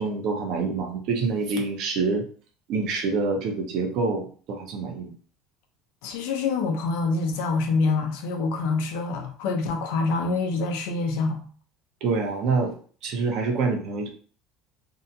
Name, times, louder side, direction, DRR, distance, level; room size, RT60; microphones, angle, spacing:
voice 1, 0.0-2.3 2.7-5.1 12.0-12.7 13.0-14.1, right 4 dB, 55° right, 0.7 m, -26 dB
voice 2, 6.0-11.4, left 3 dB, 80° left, 0.6 m, -26 dB
2.7 x 2.2 x 2.7 m
supercardioid pair, 125°, 0 cm